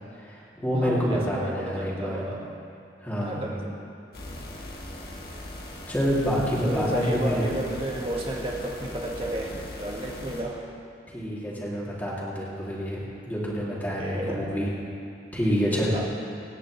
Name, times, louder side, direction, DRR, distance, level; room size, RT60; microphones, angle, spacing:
voice 1, 0.2-2.2 3.0-3.5 5.9-7.6 11.1-13.0 13.3-14.7 15.3-16.0, equal, 10° left, -7 dB, 2.7 m, -27 dB
voice 2, 0.8-2.6 3.2-3.8 6.6-10.7 14.0-14.6 15.9-16.1, right 1 dB, 30° right, -2 dB, 1.8 m, -32 dB
sound 1, 4.1-10.4, left 1 dB, 55° left, 1.7 m, -39 dB
26.5 x 9.9 x 3.2 m, 2.6 s
head